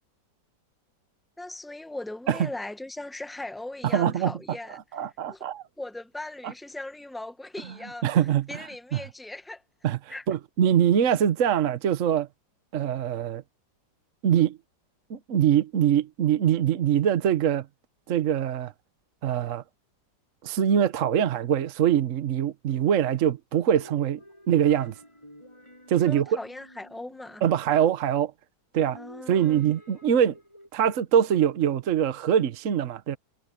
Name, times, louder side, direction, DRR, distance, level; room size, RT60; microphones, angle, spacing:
voice 1, 1.4-5.4 5.8-8.1 8.5-9.6 10.1-10.3 21.2-21.4 26.0-27.4 28.9-29.6, left 2 dB, ahead, 0.4 m, -39 dB
voice 2, 3.9-4.3 4.9-5.6 6.4-6.5 8.0-8.7 8.9-9.0 9.8-10.0 10.3-12.3 12.7-13.4 14.2-14.6 15.1-17.7 18.1-18.7 19.2-19.6 20.4-24.2 24.5-24.9 25.9-26.4 27.4-28.3 28.7-29.0 29.3-30.4 30.7-33.2, right 9 dB, 50° right, 1.1 m, -23 dB
sound 1, 23.5-27.7 28.8-30.7, equal, 15° left, 5.7 m, -51 dB
omnidirectional pair, 1.9 m